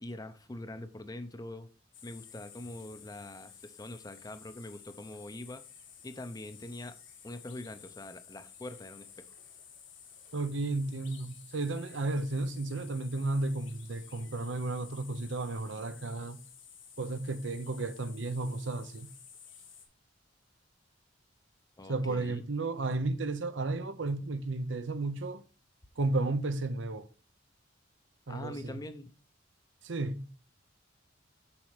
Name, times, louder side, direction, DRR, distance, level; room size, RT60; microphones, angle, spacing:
voice 1, 0.0-1.7 2.0-5.6 6.0-7.0 7.2-9.3 21.8-22.4 28.3-29.1, left 1 dB, 20° left, 0.7 m, -43 dB
sound 1, 1.9-19.8, left 8 dB, 80° left, 2.3 m, -53 dB
voice 2, 10.3-16.4 17.0-19.1 21.9-25.4 26.0-27.1 28.3-28.8 29.8-30.3, right 2 dB, 75° right, 0.8 m, -33 dB
7.2 x 5.5 x 4.8 m
head